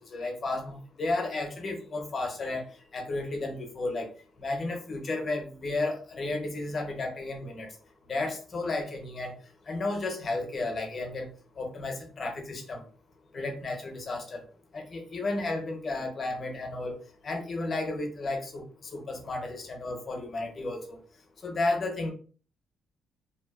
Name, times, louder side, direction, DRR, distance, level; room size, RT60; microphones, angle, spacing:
voice 1, 0.0-2.6 2.9-4.1 4.4-7.7 8.1-9.3 9.7-11.3 11.6-12.8 13.3-14.4 14.7-17.0 17.2-18.6 18.9-21.0 21.4-22.1, left 2 dB, 40° left, 3 dB, 0.8 m, -33 dB
2.7 x 2.3 x 2.3 m, 0.39 s
cardioid pair, 90°, 0 cm